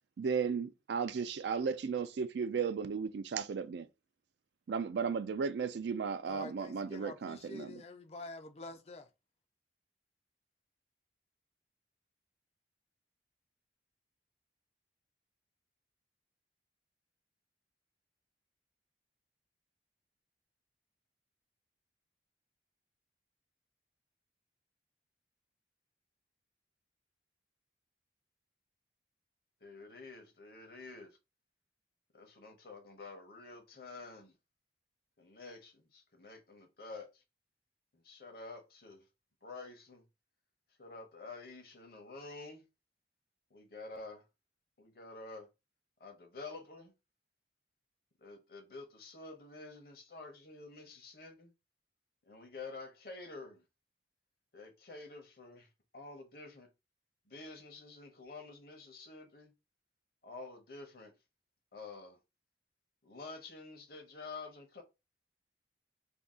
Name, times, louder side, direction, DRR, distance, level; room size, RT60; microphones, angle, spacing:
voice 1, 0.2-3.9 4.7-7.7, right 5 dB, 70° right, 0.4 m, -35 dB
voice 2, 6.3-9.1, left 2 dB, 35° left, 0.4 m, -47 dB
voice 3, 29.6-31.2 32.1-34.3 35.2-37.2 37.9-39.1 39.4-40.0 40.8-42.6 43.5-44.2 44.8-45.5 46.0-46.9 48.2-51.5 52.2-53.6 54.5-56.7 57.3-59.5 60.2-61.1 61.7-62.2 63.0-64.8, left 3 dB, 55° left, 0.8 m, -49 dB
2.6 x 2.3 x 3.6 m
head